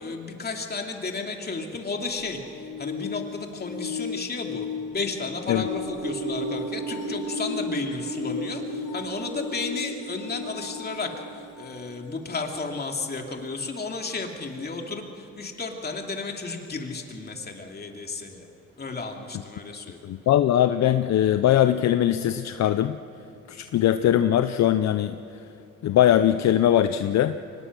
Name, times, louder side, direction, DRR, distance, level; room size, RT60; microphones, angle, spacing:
voice 1, 0.0-4.7 4.9-18.5 18.8-20.3, left 3 dB, 30° left, 2 dB, 2.7 m, -33 dB
sound 1, 2.1-11.9 14.2-14.3, left 7 dB, 90° left, 1.2 m, -36 dB
sound 2, 5.7-14.1 14.5-14.6, right 6 dB, 65° right, 2.3 m, -37 dB
voice 2, 20.0-23.0 23.5-25.1 25.8-27.4, left 11 dB, 65° left, 10 dB, 0.6 m, -21 dB
24.0 x 19.5 x 6.2 m, 2.6 s
cardioid pair, 90°, 30 cm